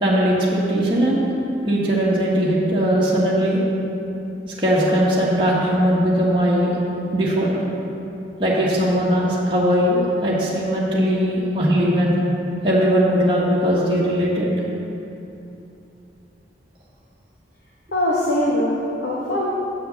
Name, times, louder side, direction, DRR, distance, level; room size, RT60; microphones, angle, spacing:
voice 1, 0.0-1.3 1.7-3.6 4.6-6.8 7.1-7.6 8.4-12.2 12.6-14.5, equal, 25° right, -6 dB, 1.3 m, -19 dB
voice 2, 17.9-19.5, left 1 dB, 65° left, -5 dB, 1.1 m, -22 dB
7.5 x 5.6 x 6.8 m, 2.8 s
head